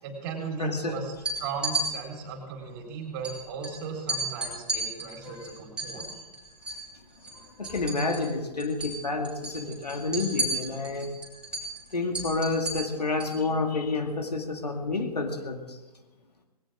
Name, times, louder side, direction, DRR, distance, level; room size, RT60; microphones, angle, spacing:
voice 1, 0.0-1.1 1.4-6.1, right 5 dB, 35° right, 1 dB, 4.0 m, -36 dB
voice 2, 0.6-1.0 5.2-5.4 7.3-11.1 11.9-15.8, left 3 dB, 75° left, 4 dB, 2.2 m, -29 dB
sound 1, 1.1-1.9 3.2-3.3 3.6-3.7 4.1-6.9 7.1-8.3 8.6-8.9 9.2-13.4, right 2 dB, 5° right, 4.5 m, -33 dB
19.5 x 18.0 x 3.6 m, 1.2 s
figure-of-eight pair, 125°, 21 cm